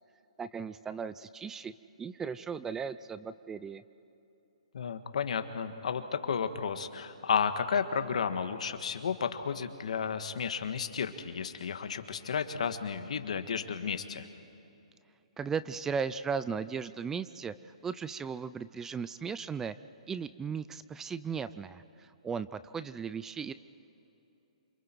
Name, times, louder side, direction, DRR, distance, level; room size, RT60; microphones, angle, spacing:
voice 1, 0.4-1.7 2.0-3.8 15.4-19.7 20.1-23.5, right 6 dB, 10° right, 15 dB, 0.4 m, -36 dB
voice 2, 4.7-14.3, left 6 dB, 70° left, 8 dB, 1.6 m, -32 dB
28.5 x 26.0 x 4.6 m, 2.9 s
hypercardioid pair, 145°, 4 cm